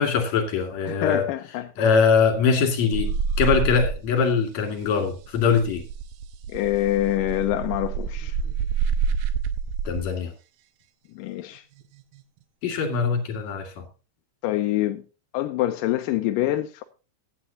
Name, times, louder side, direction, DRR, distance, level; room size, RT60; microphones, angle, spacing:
voice 1, 0.0-1.2 1.8-5.8 9.8-10.3 12.6-13.8, left 5 dB, 50° left, 3.3 m, -22 dB
voice 2, 0.9-2.0 6.5-8.4 11.1-11.6 14.4-15.0 15.3-16.8, left 14 dB, 80° left, 2.0 m, -26 dB
sound 1, 2.9-4.3 4.6-10.0 11.8-12.2, right 6 dB, 75° right, 2.5 m, -27 dB
15.5 x 9.3 x 2.8 m
omnidirectional pair, 4.6 m